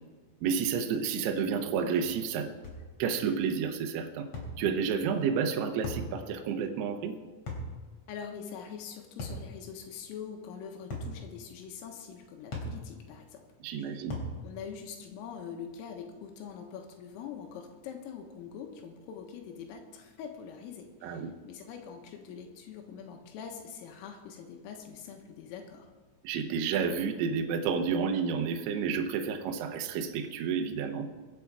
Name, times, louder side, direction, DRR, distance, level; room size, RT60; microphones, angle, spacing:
voice 1, 0.4-2.5 3.0-4.3 4.6-7.1 13.6-14.2 21.0-21.3 26.2-31.1, right 6 dB, 75° right, 5 dB, 2.5 m, -30 dB
sound 1, 2.6-2.9 4.3-4.6 5.8-6.1 7.5-7.7 9.2-9.5 10.9-11.2 12.5-12.8 14.1-14.4, left 1 dB, 40° left, 3.8 m, -36 dB
voice 2, 8.1-13.4 13.8-14.1 14.4-25.9, left 7 dB, 85° left, 3 dB, 3.9 m, -44 dB
23.5 x 8.5 x 4.8 m, 1.4 s
omnidirectional pair, 5.8 m